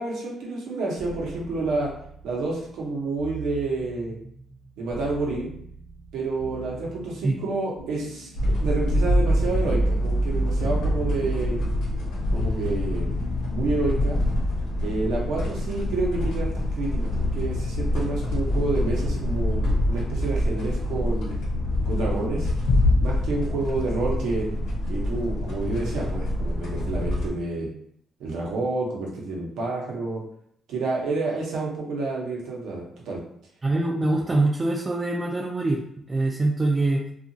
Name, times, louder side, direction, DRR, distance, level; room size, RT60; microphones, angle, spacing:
voice 1, 0.0-1.9 2.2-4.1 4.8-5.5 6.1-8.3 8.6-11.6 12.3-13.2 13.5-14.2 14.8-16.5 16.8-21.3 21.8-22.5 23.0-24.5 24.9-27.7 28.2-30.2 30.7-33.2, right 3 dB, 85° right, -2 dB, 0.8 m, -29 dB
sound 1, 1.0-14.3, right 3 dB, 55° right, 0.8 m, -42 dB
sound 2, 8.3-27.3, left 1 dB, 90° left, 0.8 m, -25 dB
voice 2, 33.6-35.8 36.1-37.0, right 2 dB, 30° right, -2 dB, 0.4 m, -23 dB
2.7 x 2.4 x 2.6 m, 0.68 s
cardioid pair, 90°, 0 cm